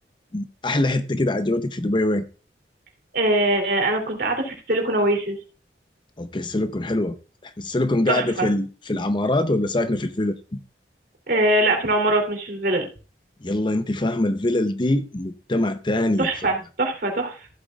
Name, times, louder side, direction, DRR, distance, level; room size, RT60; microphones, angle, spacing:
voice 1, 0.3-2.3 6.2-7.2 7.4-10.6 13.4-16.3, left 1 dB, 25° left, 0.7 m, -23 dB
voice 2, 3.1-5.4 8.1-8.5 11.3-12.9 16.2-17.5, right 1 dB, 55° right, 3.1 m, -22 dB
15.0 x 8.4 x 2.4 m
head